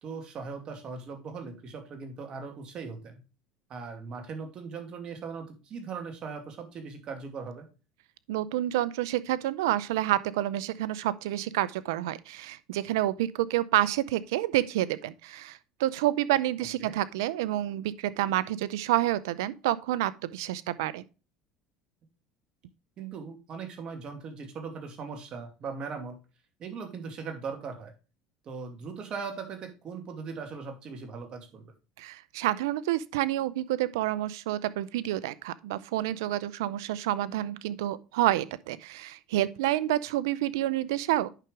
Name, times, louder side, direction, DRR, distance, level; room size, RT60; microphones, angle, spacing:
voice 1, 0.0-3.2 3.7-7.6 16.8-16.9 23.0-26.2 26.6-27.9 28.4-31.7, right 5 dB, 45° right, 2.6 m, -39 dB
voice 2, 8.3-21.0 32.0-41.3, right 14 dB, 85° right, 0.6 m, -29 dB
9.1 x 6.0 x 3.3 m
supercardioid pair, 95°, 2 cm